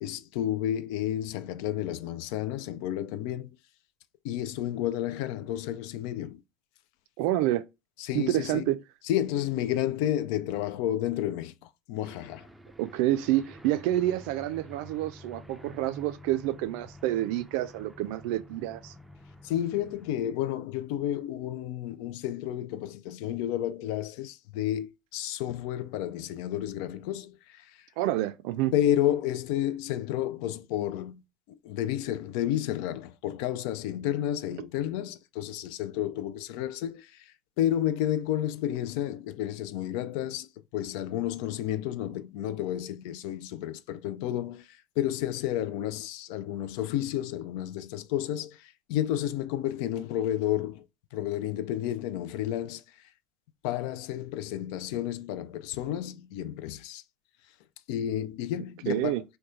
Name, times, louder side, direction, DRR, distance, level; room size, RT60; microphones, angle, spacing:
voice 1, 0.0-3.5 4.2-6.4 8.0-8.6 9.0-11.5 11.9-12.5 19.4-27.7 28.7-31.2 31.5-37.3 37.6-50.8 51.1-52.8 53.6-57.0 57.9-59.2, left 12 dB, 70° left, 0.3 m, -31 dB
voice 2, 7.2-7.6 8.1-8.8 12.8-18.9 28.0-28.7 58.9-59.2, right 14 dB, 70° right, 0.4 m, -28 dB
Aircraft, 12.0-20.1, left 1 dB, 5° right, 0.5 m, -50 dB
3.0 x 2.2 x 3.6 m
hypercardioid pair, 70°, 2 cm